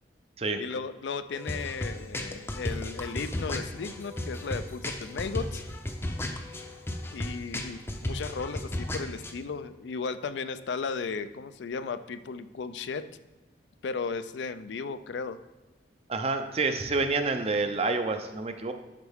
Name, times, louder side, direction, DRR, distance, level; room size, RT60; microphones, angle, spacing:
voice 1, 0.6-5.6 7.1-13.0 13.8-15.4, left 5 dB, 75° left, 12 dB, 0.4 m, -35 dB
sound 1, 1.3-9.3, left 1 dB, 15° left, 0.5 m, -35 dB
voice 2, 16.1-18.7, right 3 dB, 35° right, 7 dB, 0.5 m, -28 dB
10.5 x 4.4 x 3.5 m, 1.2 s
head